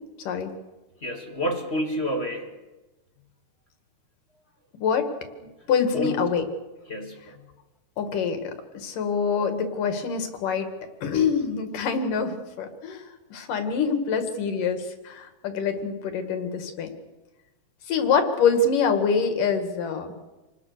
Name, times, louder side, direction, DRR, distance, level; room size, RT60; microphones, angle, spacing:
voice 1, 0.2-0.5 4.8-5.1 5.7-6.5 8.0-10.7 11.0-16.9 17.9-20.1, left 5 dB, 85° left, 7 dB, 3.7 m, -25 dB
voice 2, 1.0-2.5 5.9-6.1 6.9-7.4, equal, 25° left, 4 dB, 1.5 m, -29 dB
27.5 x 19.5 x 6.7 m, 1.1 s
omnidirectional pair, 3.7 m